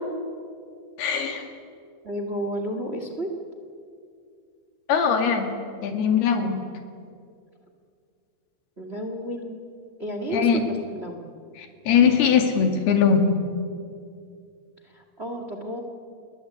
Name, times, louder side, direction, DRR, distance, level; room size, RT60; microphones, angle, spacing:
voice 1, 1.0-1.5 4.9-5.5 5.8-6.6 10.3-10.6 11.6-13.3, left 6 dB, 85° left, 5 dB, 4.3 m, -21 dB
voice 2, 2.0-3.4 8.8-9.6 10.0-11.3 14.8-15.8, equal, 20° right, 5 dB, 1.7 m, -31 dB
29.5 x 21.5 x 8.6 m, 2.3 s
omnidirectional pair, 4.4 m